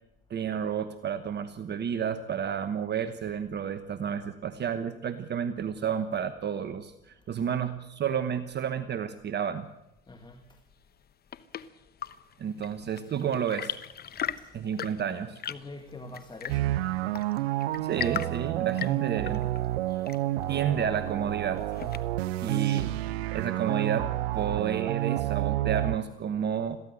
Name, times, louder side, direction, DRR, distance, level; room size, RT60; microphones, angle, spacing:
voice 1, 0.3-9.7 12.4-13.8 14.5-15.4 17.8-19.5 20.5-21.6 22.4-23.0 23.3-26.8, right 8 dB, 35° right, 1.2 m, -31 dB
voice 2, 10.1-10.6 12.6-12.7 14.1-14.5 15.5-16.8, left 2 dB, 15° left, 2.1 m, -45 dB
Chirp tweet / Engine / Tap, 10.9-22.4, left 9 dB, 30° left, 1.0 m, -40 dB
sound 1, 16.5-26.0, right 15 dB, 80° right, 0.7 m, -29 dB
22.0 x 15.5 x 7.9 m
hypercardioid pair, 85°, 31 cm